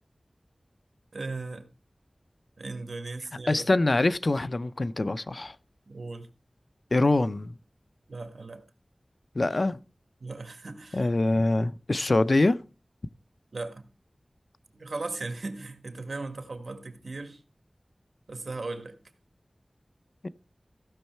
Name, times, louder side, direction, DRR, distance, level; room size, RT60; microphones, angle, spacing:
voice 1, 1.1-1.7 2.6-3.7 5.9-6.3 8.1-8.6 10.2-11.1 13.5-13.9 14.7-17.4 18.3-18.9, right 3 dB, 90° right, 1.5 m, -37 dB
voice 2, 3.5-5.5 6.9-7.6 9.3-9.8 10.9-12.6 20.2-20.3, left 2 dB, 60° left, 0.6 m, -24 dB
15.5 x 6.4 x 4.5 m
wide cardioid pair, 50°, 0 cm